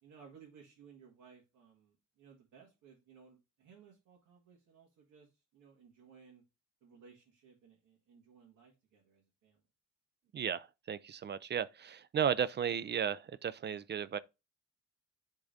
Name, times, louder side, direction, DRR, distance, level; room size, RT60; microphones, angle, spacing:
voice 1, 0.0-6.4 6.8-9.6, right 6 dB, 85° right, 1.8 m, -60 dB
voice 2, 10.3-14.2, right 8 dB, 35° right, 0.4 m, -34 dB
10.0 x 3.7 x 2.6 m
cardioid pair, 90°, 30 cm